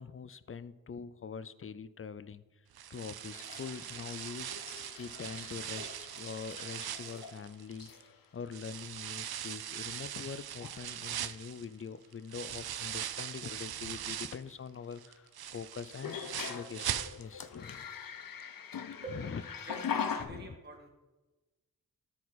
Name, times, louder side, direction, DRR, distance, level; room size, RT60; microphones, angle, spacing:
voice 1, 0.0-2.4 2.9-4.5 5.0-7.9 8.3-17.9 19.1-19.4 20.2-20.6, left 6 dB, 35° left, 15 dB, 0.6 m, -44 dB
sound 1, 2.7-8.0 8.5-14.5 14.9-17.5 17.8-17.9 18.4-18.5, right 10 dB, 75° right, 0.6 m, -41 dB
sound 2, 3.3-7.4 7.8-8.2 9.2-9.3 9.8-10.2 10.5-10.8 12.8-12.9 15.9-20.3, left 7 dB, 60° left, 0.8 m, -42 dB
voice 2, 19.7-20.9, right 2 dB, 25° right, 0 dB, 2.0 m, -45 dB
13.0 x 4.6 x 4.1 m, 1.2 s
cardioid pair, 45°, 38 cm